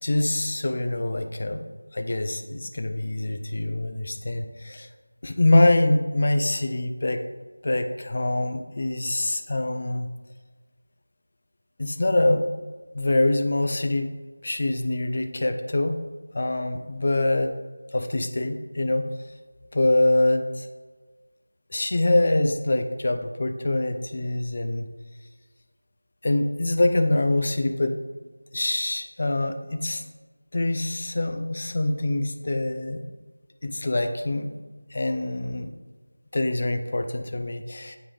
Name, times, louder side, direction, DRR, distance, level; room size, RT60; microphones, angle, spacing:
voice 1, 0.0-1.6 1.9-4.9 5.2-7.2 7.6-10.1 11.8-12.5 12.9-14.1 14.4-16.0 16.3-17.5 17.9-19.1 19.7-20.7 21.7-24.9 26.2-28.0 28.5-30.0 30.5-33.1 33.6-34.5 34.9-35.7 36.3-38.0, left 2 dB, 35° left, 6 dB, 0.5 m, -24 dB
9.1 x 3.3 x 3.8 m, 1.3 s
figure-of-eight pair, 175°, 0 cm